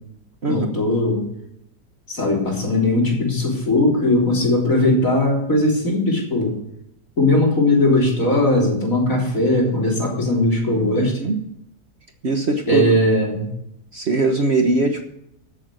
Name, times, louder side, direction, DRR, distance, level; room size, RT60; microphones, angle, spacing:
voice 1, 0.5-1.2 2.1-6.5 7.2-11.1 12.7-13.5, left 1 dB, 55° left, -1 dB, 4.0 m, -19 dB
voice 2, 10.9-11.4 12.2-12.8 13.9-15.0, right 2 dB, 45° right, 4 dB, 1.3 m, -21 dB
14.5 x 7.5 x 6.3 m, 0.77 s
omnidirectional pair, 1.7 m